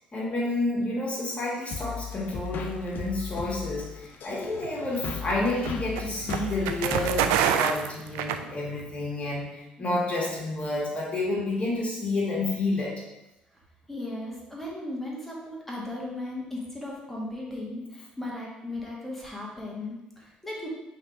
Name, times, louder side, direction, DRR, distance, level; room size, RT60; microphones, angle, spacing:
voice 1, 0.1-13.0, left 2 dB, 30° left, -5 dB, 2.0 m, -30 dB
sound 1, 1.7-8.4, left 6 dB, 50° left, 0.6 m, -37 dB
sound 2, 4.6-9.0, right 9 dB, 65° right, 0.3 m, -28 dB
voice 2, 13.9-20.7, left 1 dB, 5° left, -4 dB, 1.9 m, -36 dB
5.5 x 3.8 x 4.7 m, 0.95 s
figure-of-eight pair, 50°, 4 cm